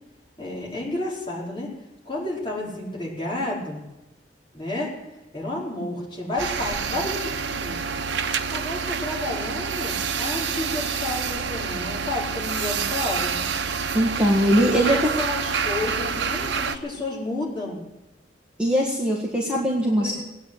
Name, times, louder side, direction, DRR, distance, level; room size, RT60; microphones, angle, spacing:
voice 1, 0.4-1.7 2.0-3.8 4.5-4.9 5.3-7.9 8.5-13.4 14.5-17.8 19.8-20.1, left 2 dB, 25° left, -5 dB, 4.6 m, -31 dB
sound 1, 6.4-16.8, right 6 dB, 75° right, 0.8 m, -27 dB
voice 2, 13.9-15.0 18.6-20.1, equal, 5° right, -3 dB, 1.7 m, -21 dB
18.5 x 9.1 x 8.0 m, 0.98 s
head